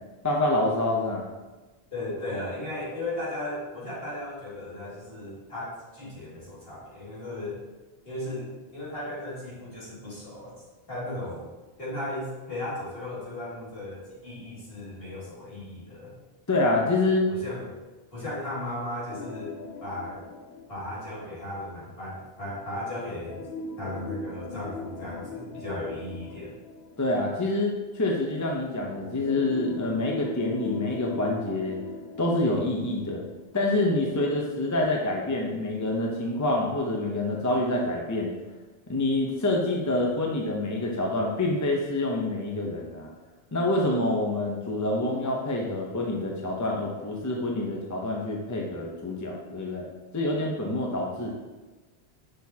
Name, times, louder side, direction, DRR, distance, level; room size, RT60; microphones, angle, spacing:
voice 1, 0.2-1.2 16.5-17.3 27.0-31.8 32.2-33.3 33.5-38.3 38.9-43.1 43.5-49.9 50.1-51.3, left 2 dB, 20° left, -1 dB, 0.7 m, -27 dB
voice 2, 1.9-7.6 8.0-10.6 10.9-11.5 11.8-16.2 17.3-17.7 18.1-20.2 20.7-23.4 23.8-26.6, left 1 dB, 65° left, -8 dB, 2.7 m, -36 dB
sound 1, 19.1-21.8 23.2-27.6 28.8-33.8 34.1-34.2 34.8-34.9, left 3 dB, 85° left, 0.9 m, -39 dB
6.3 x 6.3 x 2.8 m, 1.2 s
omnidirectional pair, 1.1 m